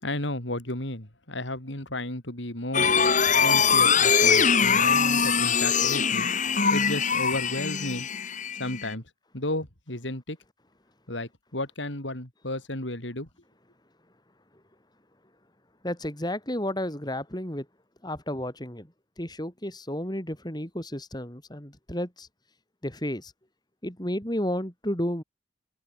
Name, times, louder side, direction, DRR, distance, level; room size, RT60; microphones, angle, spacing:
voice 1, 0.0-2.9 3.4-6.3 6.7-8.1 8.6-9.0 9.3-10.4 11.1-13.3, left 1 dB, 75° left, 5.3 m, -33 dB
sound 1, 2.7-8.9, left 6 dB, 40° left, 4.5 m, -22 dB
voice 2, 15.8-17.7 18.0-18.9 19.2-22.3 22.8-23.3 23.8-25.2, left 1 dB, 20° left, 4.2 m, -32 dB
head